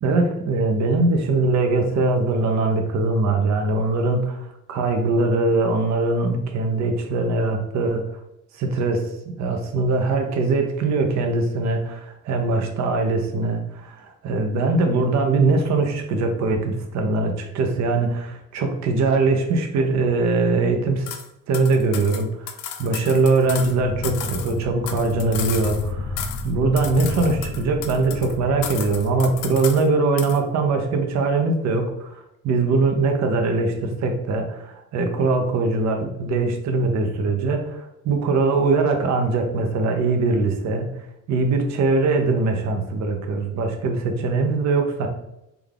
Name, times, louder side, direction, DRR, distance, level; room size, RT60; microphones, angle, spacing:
voice 1, 0.0-8.0 8.5-21.2 21.5-22.5 22.8-32.2 32.4-40.9 41.3-45.1, right 3 dB, 65° right, 4 dB, 0.6 m, -22 dB
sound 1, 21.1-21.3 21.5-23.7 24.0-25.9 26.2-26.5 26.8-28.3 28.6-29.9 30.2-30.4, left 9 dB, 85° left, 0.5 m, -34 dB
sound 2, 23.4-29.9, left 1 dB, 20° left, 0.8 m, -32 dB
3.4 x 2.3 x 3.4 m, 0.85 s
cardioid pair, 90°, 30 cm